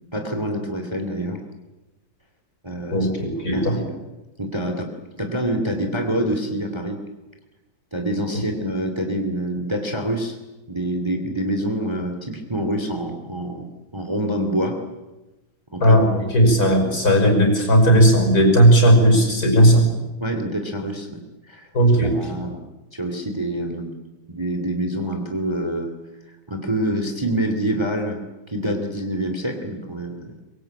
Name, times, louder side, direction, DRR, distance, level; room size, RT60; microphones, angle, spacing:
voice 1, 0.1-1.4 2.6-3.1 3.5-4.0 4.4-4.9 5.2-7.0 7.9-10.4 10.7-13.7 13.9-14.8 15.7-16.0 20.2-21.2 21.5-21.7 22.0-22.6 22.9-23.9 24.3-25.9 26.5-28.2 28.5-30.4, right 1 dB, 15° right, 5 dB, 2.6 m, -26 dB
voice 2, 2.9-3.8 15.8-19.9 21.7-22.2, right 1 dB, 50° left, 4 dB, 6.4 m, -16 dB
24.5 x 22.5 x 8.8 m, 1.0 s
omnidirectional pair, 2.1 m